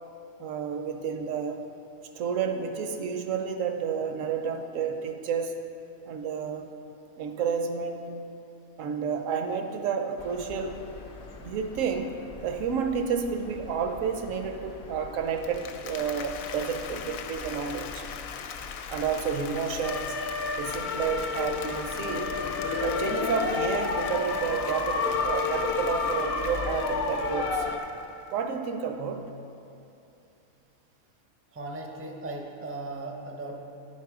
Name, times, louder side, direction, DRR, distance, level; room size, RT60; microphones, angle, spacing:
voice 1, 0.4-1.6 2.1-5.6 6.1-6.7 7.2-8.1 8.8-10.8 11.4-12.1 12.4-18.1 18.9-20.2 20.5-22.4 22.8-27.6 28.3-29.3, right 6 dB, 70° right, 6 dB, 1.0 m, -30 dB
sound 1, 10.2-27.8, left 4 dB, 55° left, 0.7 m, -33 dB
Applause, 15.3-28.3, left 7 dB, 80° left, 1.0 m, -41 dB
voice 2, 31.5-33.6, right 2 dB, 15° right, 0 dB, 0.4 m, -38 dB
10.5 x 4.7 x 4.8 m, 2.8 s
omnidirectional pair, 1.5 m